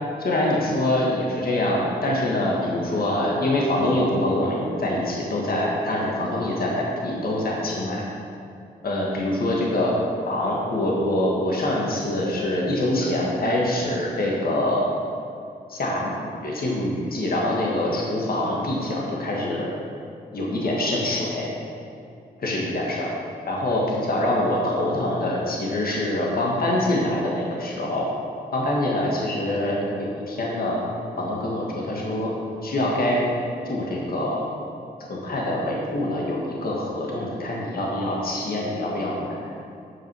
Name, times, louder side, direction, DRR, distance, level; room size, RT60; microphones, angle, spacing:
voice 1, 0.2-8.0 8.8-10.0 10.3-14.8 15.7-16.1 16.4-19.7 20.3-21.5 22.4-23.1 23.5-28.1 28.5-30.8 31.2-32.3 32.6-33.2 33.7-34.4 35.1-39.4, left 1 dB, 60° left, -3 dB, 1.7 m, -24 dB
8.3 x 4.9 x 6.1 m, 2.6 s
cardioid pair, 60°, 17 cm